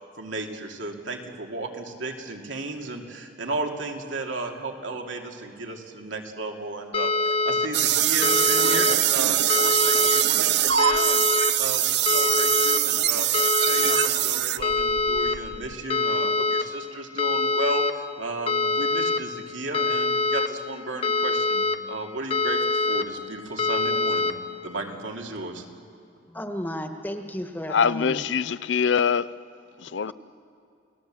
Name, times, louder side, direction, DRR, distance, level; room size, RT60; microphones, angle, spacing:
voice 1, 0.2-11.2 11.6-13.3 13.6-25.6, right 2 dB, 85° right, 2.6 m, -34 dB
sound 1, 6.9-7.7 8.2-8.9 9.5-10.2 10.8-11.5 12.1-12.8 13.3-14.1 14.6-15.4 15.9-16.6 17.2-17.9 18.5-19.2 19.7-20.5 21.0-21.8 22.3-23.0 23.6-24.3, left 3 dB, 30° left, 0.9 m, -24 dB
sound 2, 7.7-15.7, right 12 dB, 60° right, 0.6 m, -23 dB
voice 2, 26.3-28.2, equal, 10° left, 1.4 m, -33 dB
voice 3, 27.7-29.3 29.8-30.1, left 6 dB, 70° left, 0.5 m, -23 dB
29.5 x 18.5 x 7.7 m
head